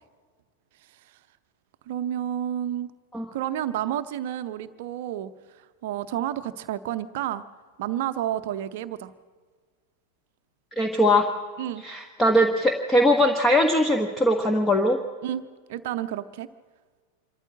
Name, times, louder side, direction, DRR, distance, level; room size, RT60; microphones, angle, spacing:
voice 1, 1.9-2.9 3.3-5.3 5.6-7.4 7.8-9.1 11.6-11.8 15.2-15.4 15.7-16.5, right 11 dB, 50° right, 11 dB, 0.7 m, -30 dB
voice 2, 10.8-11.3 11.8-15.0, left 1 dB, 10° left, 4 dB, 1.4 m, -20 dB
25.5 x 13.5 x 7.6 m, 1.5 s
figure-of-eight pair, 90°, 0 cm